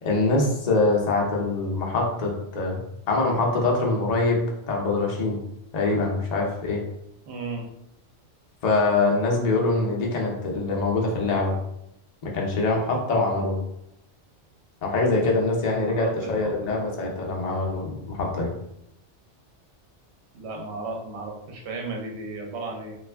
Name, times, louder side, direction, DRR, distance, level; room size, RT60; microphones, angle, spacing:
voice 1, 0.0-2.8 3.1-4.4 4.7-5.4 5.7-6.8 8.6-11.5 12.2-13.6 14.8-18.5, left 3 dB, 40° left, -1 dB, 0.7 m, -24 dB
voice 2, 7.3-7.6 15.7-16.8 20.3-22.9, right 3 dB, 70° right, 1 dB, 0.9 m, -34 dB
3.3 x 2.4 x 3.3 m, 0.78 s
omnidirectional pair, 1.2 m